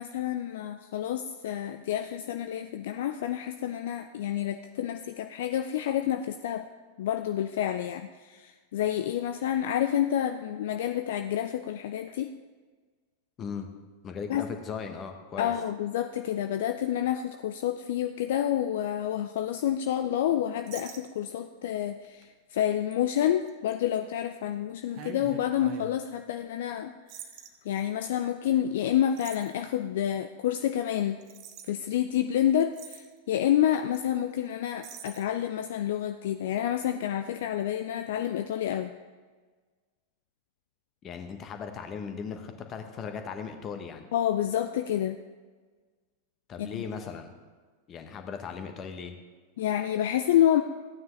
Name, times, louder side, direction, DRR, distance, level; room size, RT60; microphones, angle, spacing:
voice 1, 0.0-6.7 7.0-12.3 14.3-14.5 15.4-26.9 27.6-31.2 31.6-39.0 44.1-45.2 46.6-46.9 49.6-50.6, left 11 dB, 55° left, 8 dB, 0.4 m, -29 dB
voice 2, 14.0-15.5 41.0-44.1 46.5-47.3 47.9-49.1, left 6 dB, 30° left, 6 dB, 1.2 m, -38 dB
sound 1, 20.7-21.5 22.0-22.2 22.9-23.0 23.5-23.7 24.9-26.0 27.1-27.5 29.2-29.5 31.2-31.7 32.3-32.4 32.6-33.1 33.9-34.1 34.4-34.5 34.8-35.2, right 8 dB, 40° right, 1.0 m, -44 dB
15.0 x 9.3 x 3.3 m, 1.4 s
figure-of-eight pair, 90°, 0 cm